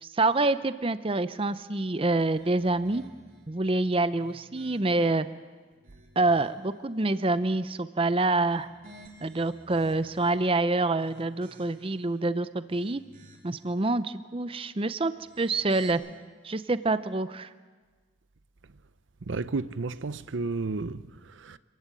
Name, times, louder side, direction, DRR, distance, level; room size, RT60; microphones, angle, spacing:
voice 1, 0.0-3.0 3.5-5.3 6.2-8.7 9.2-13.0 13.4-16.0 16.4-17.5, right 2 dB, 30° right, 0.7 m, -26 dB
sound 1, 2.2-3.5 4.0-5.2 5.7-6.8 8.3-10.4 10.9-12.0 12.5-13.6 15.1-15.9, right 1 dB, 50° right, 3.4 m, -54 dB
voice 2, 19.2-21.6, right 3 dB, 85° right, 0.7 m, -32 dB
26.5 x 15.0 x 9.1 m
head